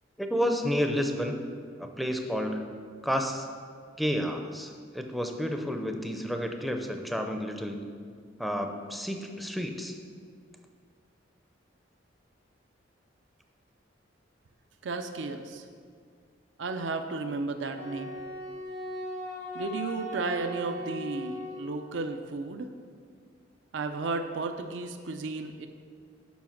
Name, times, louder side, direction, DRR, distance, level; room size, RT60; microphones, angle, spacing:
voice 1, 0.2-1.4 1.8-3.5 4.0-7.8 8.4-10.0, equal, ahead, 4 dB, 0.6 m, -31 dB
voice 2, 14.8-15.6 16.6-18.1 19.5-22.7 23.7-25.7, right 3 dB, 70° right, 6 dB, 0.5 m, -33 dB
Wind instrument woodwind instrument, 17.7-22.0, equal, 80° left, 2.2 m, -38 dB
7.2 x 5.6 x 5.8 m, 2.1 s
head